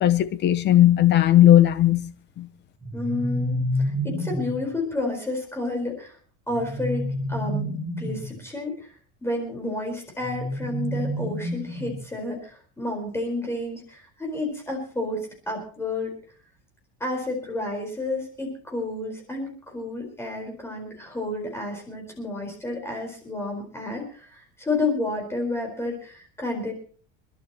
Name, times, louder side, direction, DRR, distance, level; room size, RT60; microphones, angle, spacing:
voice 1, 0.0-2.1 2.4-2.5, left 12 dB, 35° left, 0.8 m, -17 dB
sound 1, 2.8-4.7 6.5-8.4 10.2-12.1, equal, 10° right, 3.9 m, -29 dB
voice 2, 2.9-6.2 6.5-7.0 7.3-8.9 9.2-16.1 17.0-26.7, left 2 dB, 10° left, 4.4 m, -30 dB
27.5 x 11.5 x 3.0 m
cardioid pair, 155°, 31 cm